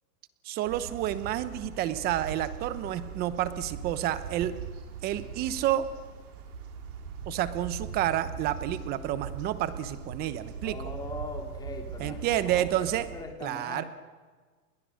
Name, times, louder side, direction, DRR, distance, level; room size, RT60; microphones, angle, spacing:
voice 1, 0.4-4.5 5.0-5.9 7.3-10.8 12.0-13.1 13.4-13.8, right 12 dB, 20° right, 13 dB, 1.0 m, -29 dB
sound 1, 0.6-13.2, right 6 dB, 65° right, 5.9 m, -40 dB
voice 2, 10.6-13.8, left 2 dB, 10° left, 3 dB, 2.9 m, -41 dB
30.0 x 22.0 x 6.5 m, 1.4 s
hypercardioid pair, 150°, 49 cm